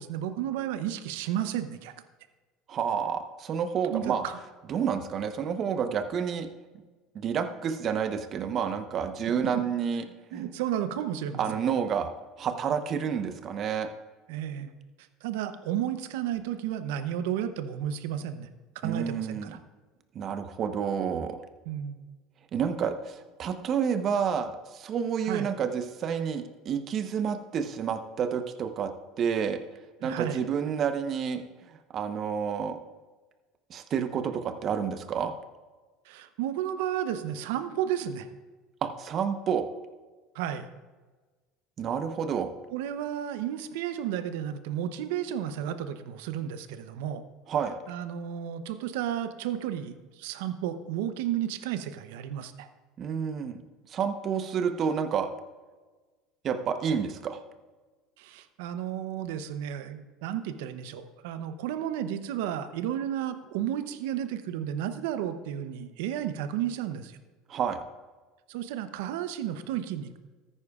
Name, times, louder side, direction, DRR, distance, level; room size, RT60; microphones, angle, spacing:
voice 1, 0.0-1.9 3.9-4.4 9.5-9.6 10.3-11.4 14.3-14.7 15.2-18.5 18.8-19.5 21.7-22.0 25.3-25.5 30.0-30.4 36.1-38.3 40.3-40.7 42.7-47.2 47.9-52.7 58.2-67.2 68.5-70.2, right 10 dB, 75° right, 10 dB, 0.7 m, -32 dB
voice 2, 2.7-4.2 4.7-6.5 7.1-10.0 10.3-10.5 11.4-12.1 12.4-13.9 18.8-19.5 20.1-21.4 22.5-28.9 29.2-29.6 30.0-32.8 33.7-35.3 38.8-39.7 41.8-42.5 47.5-47.8 53.0-53.6 53.9-55.3 56.4-57.4 67.5-67.8, right 7 dB, 45° right, 8 dB, 0.9 m, -29 dB
14.0 x 9.9 x 2.4 m, 1.3 s
hypercardioid pair, 85°, 0 cm